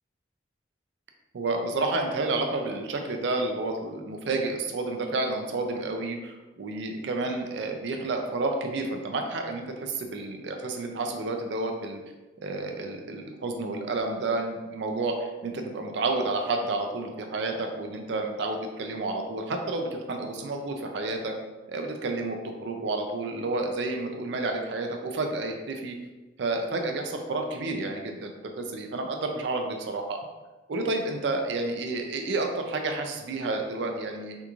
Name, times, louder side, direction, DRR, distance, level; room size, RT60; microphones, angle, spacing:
voice 1, 1.3-12.0 12.4-21.3 21.7-26.0 26.4-30.2 30.7-34.4, right 2 dB, 60° right, 4 dB, 0.4 m, -30 dB
3.5 x 2.4 x 3.0 m, 1.2 s
head